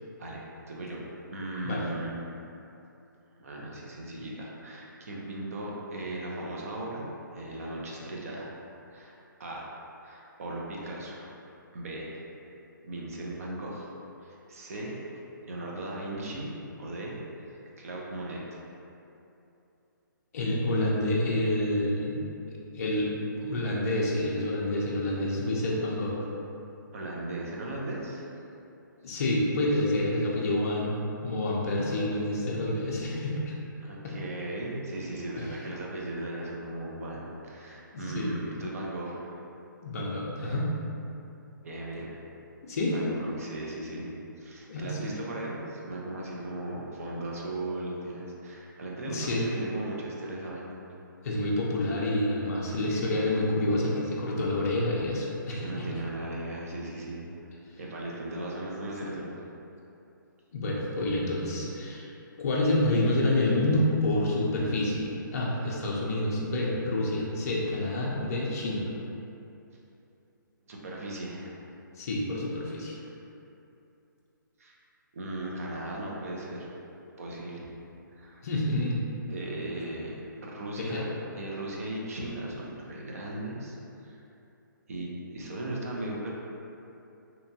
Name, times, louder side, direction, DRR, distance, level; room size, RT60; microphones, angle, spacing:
voice 1, 0.2-1.0 1.3-2.4 3.4-8.6 8.9-9.1 9.4-11.3 11.7-12.2 12.4-12.6 12.8-13.9 14.2-15.0 15.4-16.5 16.8-17.2 17.8-18.6 26.9-28.3 33.8-39.3 40.4-40.6 41.6-42.2 42.9-44.1 44.4-50.7 55.4-57.2 57.8-59.3 65.6-65.7 70.7-71.6 73.1-73.2 74.6-74.7 75.1-76.7 77.2-77.7 78.1-78.4 79.3-81.0 81.3-84.2 84.9-86.3, right 1 dB, 45° right, -3 dB, 0.5 m, -37 dB
voice 2, 20.3-22.2 22.7-23.1 23.4-26.2 29.0-33.5 34.0-34.2 35.5-35.6 37.9-38.3 39.8-40.7 42.6-42.9 44.7-45.1 49.0-49.5 51.2-55.9 60.5-62.1 62.4-68.9 72.0-73.0 78.4-79.0 79.7-79.8 80.8-81.0, left 1 dB, 45° left, -4 dB, 0.4 m, -28 dB
2.8 x 2.2 x 2.7 m, 2.8 s
hypercardioid pair, 165°, 11 cm